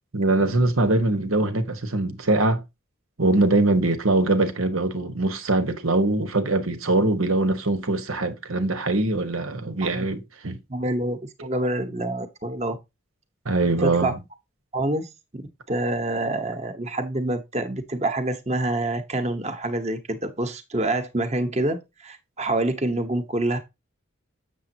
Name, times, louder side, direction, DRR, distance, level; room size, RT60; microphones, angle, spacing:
voice 1, 0.1-2.6 3.2-10.6 13.4-14.1, right 2 dB, 90° right, 1.4 m, -22 dB
voice 2, 10.7-12.8 13.8-14.1 14.7-15.4 15.7-23.6, right 1 dB, 30° right, 1.1 m, -27 dB
7.6 x 7.1 x 2.8 m
head